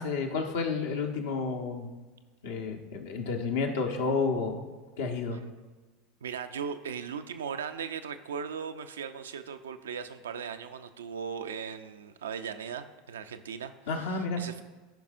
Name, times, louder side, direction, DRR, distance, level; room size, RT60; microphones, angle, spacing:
voice 1, 0.0-1.9 2.4-4.7 5.0-5.4 13.9-14.4, left 4 dB, 75° left, 3 dB, 1.0 m, -31 dB
voice 2, 6.2-14.6, right 7 dB, 85° right, 9 dB, 0.4 m, -38 dB
13.5 x 5.4 x 2.5 m, 1.3 s
hypercardioid pair, 85°, 0 cm